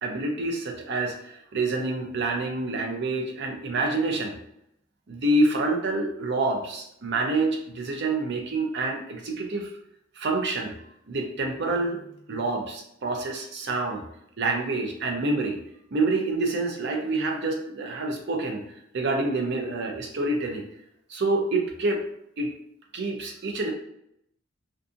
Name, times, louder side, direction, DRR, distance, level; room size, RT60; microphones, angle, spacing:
voice 1, 0.0-4.4 5.1-9.7 10.2-10.7 11.1-12.0 12.3-14.0 14.4-15.6 15.9-20.7 21.1-22.0 22.4-22.6 22.9-23.7, right 2 dB, 50° right, 2 dB, 0.5 m, -27 dB
2.5 x 2.5 x 2.5 m, 0.74 s
head